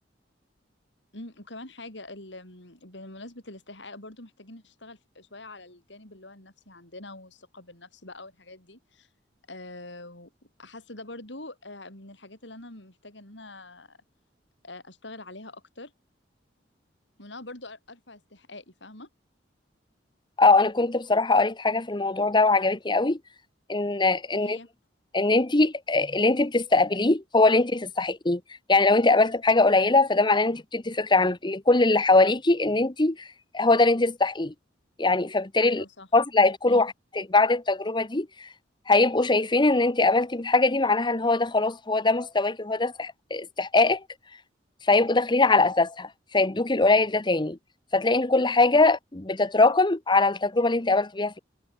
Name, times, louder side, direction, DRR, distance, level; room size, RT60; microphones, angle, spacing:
voice 1, 1.1-9.1 9.5-10.3 10.6-14.0 14.6-15.9 17.2-19.1 24.3-24.7 35.6-36.1 36.7-36.8, left 2 dB, 70° left, 7.3 m, -44 dB
voice 2, 20.4-23.2 23.7-24.6 25.1-28.4 28.7-33.3 33.5-34.5 35.0-35.8 36.1-38.5 38.9-44.0 44.9-47.6 47.9-51.4, left 3 dB, 25° left, 1.1 m, -22 dB
head